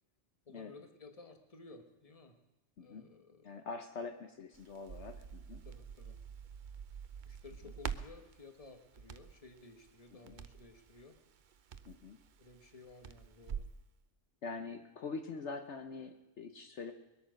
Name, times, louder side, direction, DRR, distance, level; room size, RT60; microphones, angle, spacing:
voice 1, 0.4-2.4 2.8-3.6 5.6-6.2 7.2-11.2 12.4-13.7, left 3 dB, 30° left, 6 dB, 1.4 m, -55 dB
voice 2, 2.8-3.1 3.4-5.7 10.1-10.4 11.9-12.2 14.4-16.9, left 4 dB, 65° left, 6 dB, 1.2 m, -44 dB
Crackle, 4.5-13.8, right 7 dB, 50° right, 0.7 m, -47 dB
21.5 x 8.7 x 6.4 m, 1.0 s
omnidirectional pair, 1.3 m